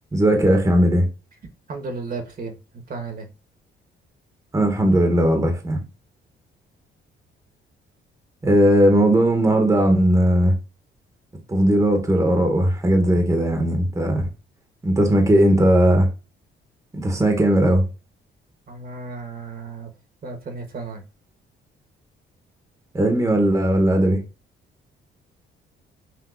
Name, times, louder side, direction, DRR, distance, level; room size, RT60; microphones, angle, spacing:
voice 1, 0.1-1.1 4.5-5.8 8.4-10.6 11.5-14.3 14.8-16.1 16.9-17.9 22.9-24.2, right 1 dB, 15° right, 1.0 m, -18 dB
voice 2, 1.7-2.6 2.9-3.3 18.7-19.9 20.2-21.0, right 4 dB, 45° right, 1.2 m, -33 dB
6.0 x 2.6 x 2.5 m
cardioid pair, 90°, 20 cm